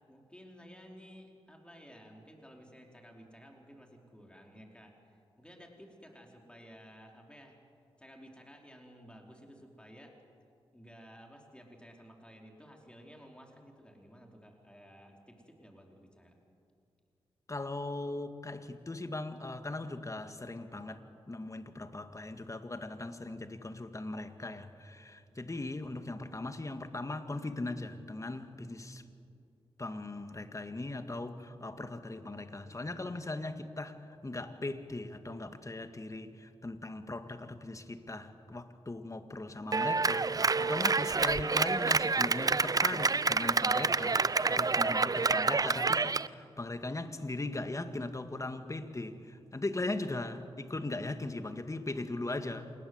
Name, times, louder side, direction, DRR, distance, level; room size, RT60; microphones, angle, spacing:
voice 1, 0.1-7.6 8.0-10.1 10.7-16.3, equal, 10° left, 1 dB, 4.7 m, -54 dB
voice 2, 17.5-29.0 29.8-52.7, left 2 dB, 30° left, 8 dB, 1.9 m, -39 dB
Clapping, 39.7-46.3, right 4 dB, 35° right, 0.6 m, -28 dB
27.0 x 20.5 x 8.1 m, 2.5 s
cardioid pair, 45°, 10 cm